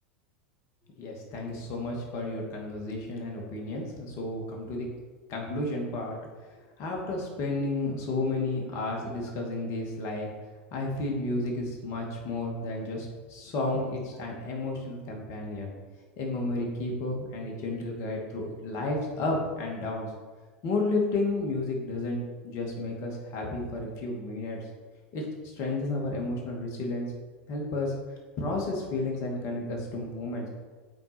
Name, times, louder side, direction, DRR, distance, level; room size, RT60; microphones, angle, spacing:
voice 1, 1.0-4.9 5.3-6.2 6.5-10.3 10.7-15.7 16.2-20.1 20.6-24.6 25.1-25.3 25.5-27.1 27.5-27.9 28.4-30.5, left 2 dB, 50° left, 0 dB, 2.5 m, -32 dB
7.8 x 4.7 x 6.2 m, 1.4 s
hypercardioid pair, 95°, 7 cm